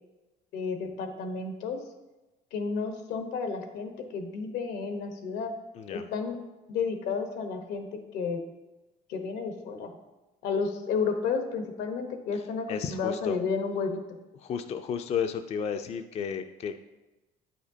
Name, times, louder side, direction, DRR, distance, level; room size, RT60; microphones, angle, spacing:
voice 1, 0.5-1.8 2.5-5.5 5.9-6.4 6.7-8.4 9.1-9.9 10.4-14.0, left 5 dB, 90° left, 6 dB, 0.9 m, -32 dB
voice 2, 12.7-13.4 14.4-16.8, left 7 dB, 40° left, 8 dB, 0.4 m, -33 dB
8.8 x 5.0 x 2.7 m, 1.1 s
cardioid pair, 110°, 17 cm